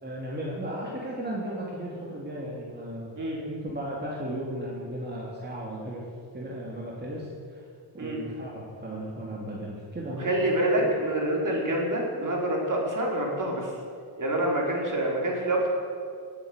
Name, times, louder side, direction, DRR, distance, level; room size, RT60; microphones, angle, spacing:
voice 1, 0.0-3.1 3.5-6.0 6.3-7.6 7.9-10.3 10.7-10.8, right 1 dB, 20° right, -4 dB, 3.1 m, -35 dB
voice 2, 10.1-13.7 14.2-15.7, right 1 dB, 45° right, -2 dB, 4.8 m, -27 dB
17.5 x 9.0 x 8.2 m, 2.3 s
cardioid pair, 70°, 44 cm